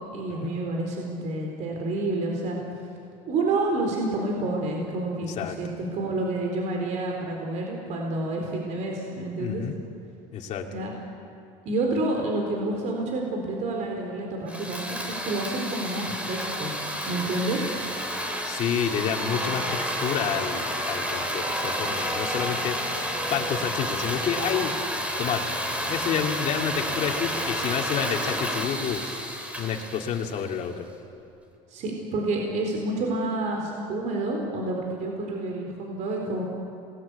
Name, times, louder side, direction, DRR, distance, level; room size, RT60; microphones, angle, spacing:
voice 1, 0.1-2.6 3.3-9.6 10.7-10.9 11.6-16.7 17.0-17.7 31.7-36.4, right 2 dB, 55° right, 1 dB, 4.2 m, -29 dB
voice 2, 9.4-9.7 10.3-10.7 18.4-22.8 23.3-24.7 25.2-25.5 25.8-29.1 29.6-30.9, left 8 dB, 50° left, 2 dB, 2.7 m, -29 dB
hand saw, 14.5-30.7, equal, 10° right, 3.6 m, -30 dB
27.5 x 20.0 x 8.3 m, 2.6 s
cardioid pair, 125°, 15 cm